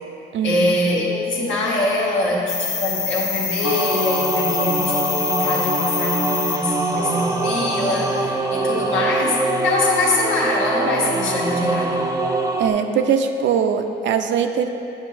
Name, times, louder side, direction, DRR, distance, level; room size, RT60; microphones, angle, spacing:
voice 1, 0.4-12.0, left 2 dB, 75° left, -4 dB, 1.4 m, -23 dB
sound 1, 2.5-8.2, left 6 dB, 35° left, 0.6 m, -27 dB
sound 2, 3.6-12.7, right 2 dB, 15° right, 0.5 m, -24 dB
voice 2, 12.6-14.7, right 7 dB, 70° right, 7 dB, 0.5 m, -21 dB
8.1 x 5.8 x 3.2 m, 2.7 s
cardioid pair, 90°, 20 cm